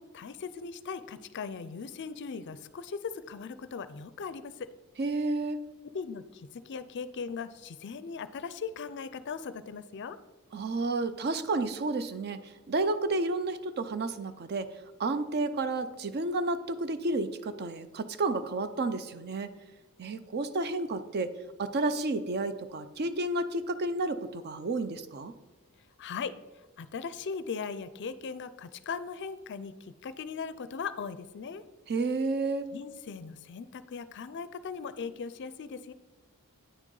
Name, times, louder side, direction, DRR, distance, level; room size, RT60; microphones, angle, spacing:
voice 1, 0.0-4.7 5.8-10.2 26.0-26.4 26.8-31.6 32.7-35.9, left 5 dB, 55° left, 14 dB, 0.4 m, -39 dB
voice 2, 5.0-5.6 10.5-14.7 15.0-19.5 20.0-21.3 21.6-25.3 31.9-32.6, right 2 dB, 50° right, 11 dB, 0.5 m, -31 dB
9.2 x 6.3 x 3.9 m, 1.2 s
head